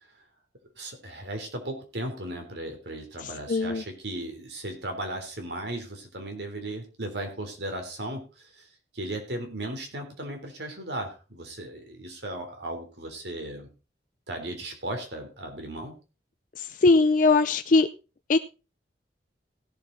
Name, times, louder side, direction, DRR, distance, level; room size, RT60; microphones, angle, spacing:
voice 1, 0.8-8.7 8.9-13.7 14.3-16.0, right 1 dB, 70° right, 4 dB, 3.5 m, -36 dB
voice 2, 3.2-3.8 16.6-17.9 18.3-18.4, left 3 dB, 45° left, 9 dB, 0.5 m, -21 dB
17.0 x 7.4 x 4.0 m, 0.32 s
head